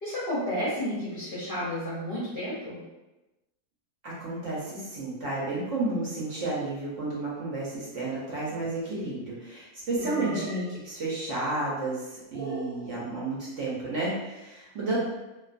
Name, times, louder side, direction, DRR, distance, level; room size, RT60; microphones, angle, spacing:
voice 1, 0.0-2.8 10.0-10.4 14.9-15.0, equal, 50° left, -9 dB, 0.7 m, -32 dB
voice 2, 4.0-15.0, right 2 dB, 60° right, -6 dB, 0.9 m, -32 dB
sound 1, 8.4-9.3 10.0-10.8 12.3-12.8, right 2 dB, 90° right, 1.1 m, -39 dB
2.5 x 2.3 x 2.4 m, 1.0 s
omnidirectional pair, 1.6 m